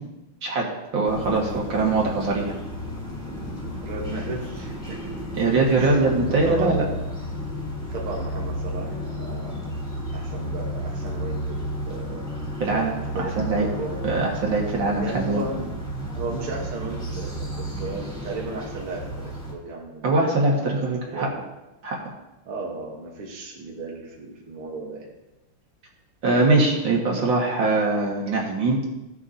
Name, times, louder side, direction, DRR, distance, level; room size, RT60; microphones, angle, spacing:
voice 1, 0.9-2.5 5.3-6.8 12.6-13.7 14.0-15.4 20.0-21.3 21.8-22.0 26.2-28.8, right 3 dB, 60° right, -2 dB, 2.4 m, -22 dB
sound 1, 1.0-19.5, equal, ahead, 2.7 m, -32 dB
voice 2, 3.8-5.1 5.8-6.0 6.3-7.1 7.9-9.5 10.1-12.3 13.1-14.0 15.0-15.8 16.1-20.1 20.5-20.8 21.1-21.3 22.4-25.1, right 3 dB, 80° right, -2 dB, 2.2 m, -35 dB
15.5 x 7.7 x 2.8 m, 0.97 s
omnidirectional pair, 2.4 m